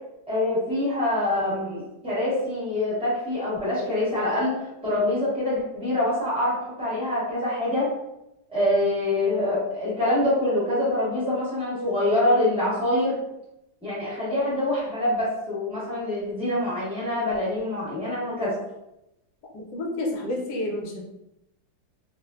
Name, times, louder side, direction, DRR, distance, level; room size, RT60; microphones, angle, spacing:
voice 1, 0.3-4.5 4.8-7.9 8.5-13.2 13.8-18.5, left 1 dB, 5° right, -9 dB, 0.6 m, -25 dB
voice 2, 19.5-21.1, left 1 dB, 70° left, -1 dB, 1.1 m, -30 dB
3.1 x 2.1 x 2.3 m, 0.88 s
omnidirectional pair, 2.1 m